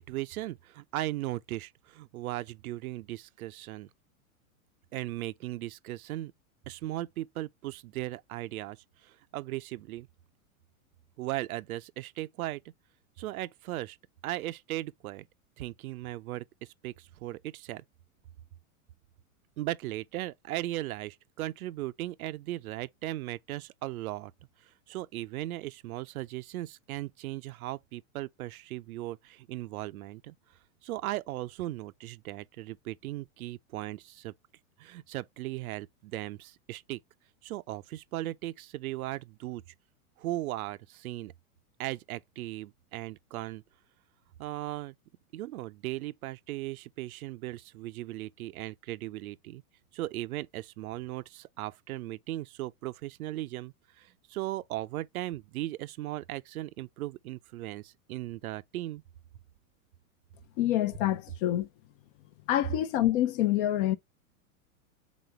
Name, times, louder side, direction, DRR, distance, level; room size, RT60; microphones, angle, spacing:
voice 1, 0.0-3.9 4.9-6.3 6.7-10.1 11.2-12.6 13.2-14.0 14.2-15.3 15.6-17.8 19.6-24.3 24.6-30.3 30.8-34.3 34.8-37.0 37.4-39.6 40.2-41.3 41.8-43.6 44.4-44.9 45.3-49.6 49.9-59.0, right 16 dB, 80° right, 0.6 m, -37 dB
voice 2, 60.6-61.7 62.5-64.0, left 13 dB, 40° left, 0.6 m, -26 dB
4.2 x 3.8 x 3.2 m
supercardioid pair, 140°, 42 cm